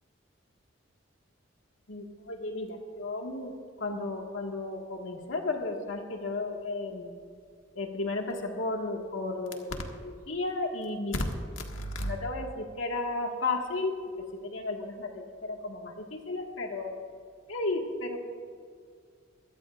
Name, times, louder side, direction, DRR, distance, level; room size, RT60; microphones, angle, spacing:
voice 1, 1.9-3.5 3.8-7.2 7.8-11.2 11.6-13.9 14.4-16.9 17.5-18.2, left 2 dB, 90° left, 2 dB, 1.8 m, -33 dB
23.5 x 13.5 x 2.5 m, 2.1 s
head